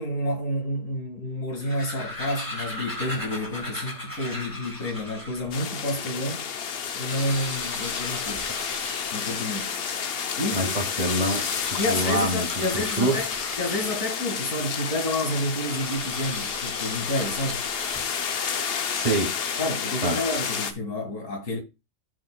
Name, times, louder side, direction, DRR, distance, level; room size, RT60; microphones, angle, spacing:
voice 1, 0.0-6.5 6.9-8.5 9.1-9.8 10.4-10.8 11.8-13.3 13.6-17.7 19.6-21.6, left 1 dB, 85° left, 2.4 m, -29 dB
sound 1, 1.4-5.6 6.1-6.2 6.4-6.5 6.8-10.0 10.9-14.4 15.7-18.4, left 1 dB, 15° left, 2.1 m, -38 dB
sound 2, 5.5-20.7, left 7 dB, 55° left, 0.9 m, -30 dB
voice 2, 10.5-12.5 12.7-13.2 18.9-19.3 20.0-20.2, right 1 dB, 30° right, 2.1 m, -26 dB
13.5 x 5.3 x 2.2 m
omnidirectional pair, 1.3 m